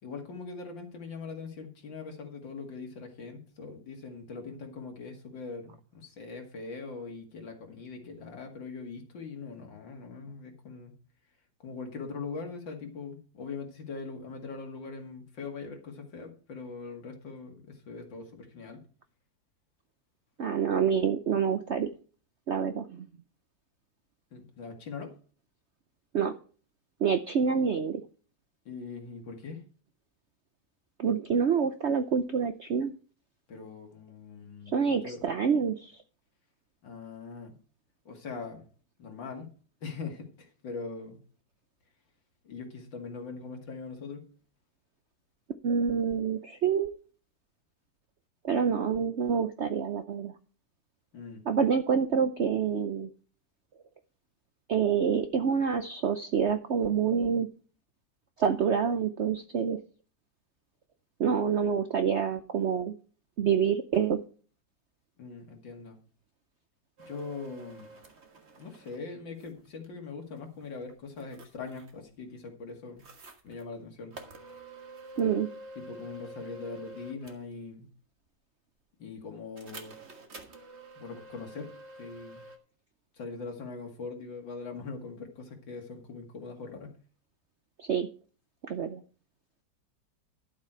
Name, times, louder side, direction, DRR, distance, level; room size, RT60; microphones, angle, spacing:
voice 1, 0.0-10.9 11.6-18.8 24.3-25.1 28.7-29.6 33.5-35.2 36.8-37.5 38.1-38.6 39.0-39.5 39.8-41.2 42.4-44.3 51.1-51.4 65.2-66.0 67.1-67.9 68.6-73.0 73.4-74.1 75.8-77.9 79.0-80.0 81.0-81.7 82.0-82.4 83.2-87.0, left 4 dB, 85° left, 3 dB, 2.8 m, -41 dB
voice 2, 20.4-21.9 22.5-23.1 26.1-26.4 27.0-28.0 31.0-32.9 34.7-35.9 45.6-46.9 48.4-50.3 51.5-53.1 54.7-57.5 58.4-59.8 61.2-62.9 63.4-64.2 75.2-75.5 87.8-88.1 88.6-89.0, right 7 dB, 70° right, 9 dB, 0.6 m, -27 dB
sound 1, 67.0-69.0 69.4-69.9 70.4-72.1 73.0-73.7 74.1-77.5 79.6-82.6, right 2 dB, 40° right, 1.7 m, -48 dB
12.0 x 7.5 x 4.4 m, 0.40 s
omnidirectional pair, 2.0 m